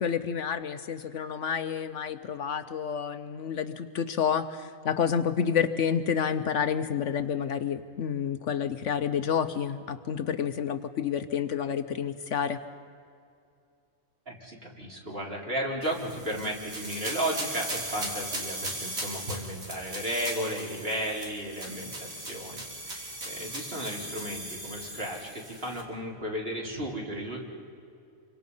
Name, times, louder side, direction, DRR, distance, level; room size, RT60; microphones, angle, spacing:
voice 1, 0.0-12.6, left 7 dB, 65° left, 10 dB, 1.0 m, -29 dB
voice 2, 14.3-27.4, equal, 45° right, -2 dB, 4.0 m, -34 dB
sound 1, 15.8-25.8, right 1 dB, 75° right, 3.9 m, -38 dB
28.0 x 24.5 x 5.5 m, 2.4 s
omnidirectional pair, 1.4 m